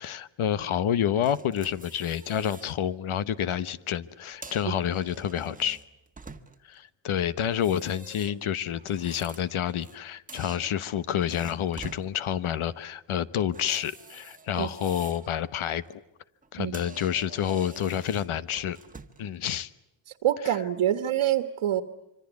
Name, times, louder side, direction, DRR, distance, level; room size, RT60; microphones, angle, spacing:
voice 1, 0.0-5.8 6.7-15.8 16.5-18.8 19.2-19.7 20.5-20.6, left 9 dB, 80° left, 15 dB, 1.2 m, -29 dB
sound 1, 1.2-2.8 3.2-3.4 4.2-6.7 7.4-10.0 10.3-12.1 13.5-15.3 15.7-16.0 16.4-16.5 16.7-19.3, right 3 dB, 15° right, 1.3 m, -47 dB
voice 2, 20.2-21.8, right 11 dB, 80° right, 8 dB, 1.5 m, -26 dB
25.5 x 25.0 x 8.2 m, 0.90 s
wide cardioid pair, 140°, 49 cm